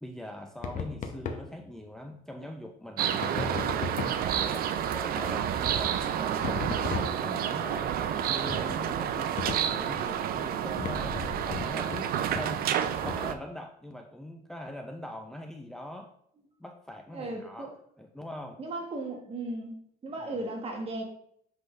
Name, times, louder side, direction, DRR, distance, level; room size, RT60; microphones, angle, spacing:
voice 1, 0.0-3.8 4.3-6.8 7.2-12.7 13.0-16.1 16.6-18.6 20.3-20.4, left 1 dB, 5° left, 0.5 m, -42 dB
sound 1, 0.6-1.5 3.2-4.3 6.4-7.5 8.5-8.8 9.4-9.8 10.8-12.1 12.3-12.5 13.0-13.3, left 5 dB, 50° left, 0.8 m, -35 dB
sound 2, 3.0-13.4, right 9 dB, 60° right, 0.5 m, -30 dB
sound 3, 8.4-11.9, left 1 dB, 35° left, 1.8 m, -47 dB
voice 2, 17.1-17.7 18.6-19.8 20.0-21.0, right 2 dB, 35° right, 1.4 m, -36 dB
8.0 x 3.8 x 3.2 m
cardioid pair, 110°, 17 cm